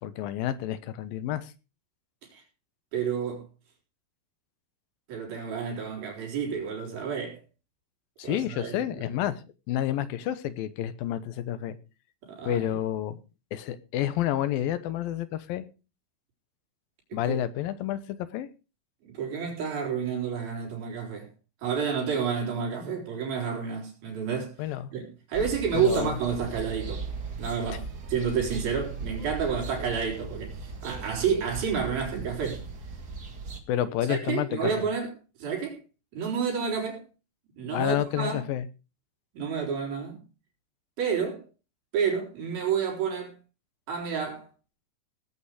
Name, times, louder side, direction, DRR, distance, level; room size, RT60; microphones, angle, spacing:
voice 1, 0.0-1.5 8.2-9.4 9.7-11.8 12.4-13.2 13.5-15.6 17.1-18.5 24.6-24.9 25.7-26.2 27.7-27.8 33.7-34.9 37.7-38.7, left 12 dB, 80° left, 2.8 m, -29 dB
voice 2, 2.9-3.5 5.1-7.4 8.2-8.8 12.2-12.7 17.1-17.4 19.0-21.3 21.6-24.6 24.9-27.1 27.4-32.6 34.1-35.1 35.4-35.8 36.1-37.1 37.6-38.5 39.3-40.2 41.0-41.5 41.9-43.3 43.9-44.5, right 6 dB, 80° right, 6.0 m, -30 dB
sound 1, 25.3-33.6, right 4 dB, 35° right, 1.7 m, -38 dB
18.0 x 8.6 x 4.9 m
omnidirectional pair, 4.2 m